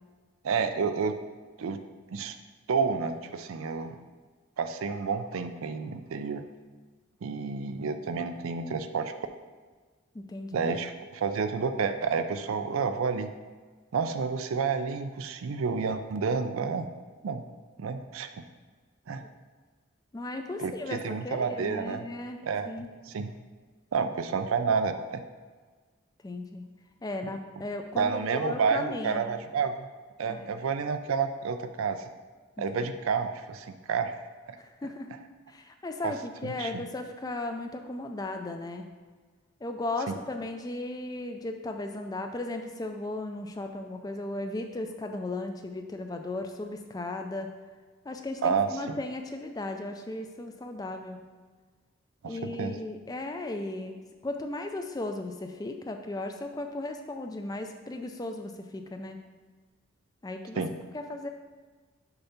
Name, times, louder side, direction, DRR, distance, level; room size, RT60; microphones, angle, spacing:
voice 1, 0.4-1.1 1.6-1.8 2.1-2.3 2.7-4.0 4.6-6.4 7.2-9.1 10.5-13.3 13.9-16.9 17.2-17.4 17.8-18.4 19.1-19.2 20.6-22.0 22.4-22.7 23.1-23.3 23.9-25.2 28.0-29.9 30.2-32.1 32.6-34.2 34.5-34.6 36.0-36.1 36.4-36.8 40.1-40.2 48.4-49.0 52.2-52.8 60.6-60.7, right 5 dB, 80° right, 9 dB, 0.4 m, -30 dB
voice 2, 10.1-10.7 20.1-22.9 26.2-26.6 27.0-29.3 30.3-30.5 32.6-32.9 34.6-35.1 35.5-38.9 39.6-47.5 48.0-51.2 52.3-59.2 60.2-60.6 60.9-61.3, left 2 dB, 20° left, 5 dB, 0.3 m, -36 dB
6.7 x 2.8 x 5.7 m, 1.4 s
head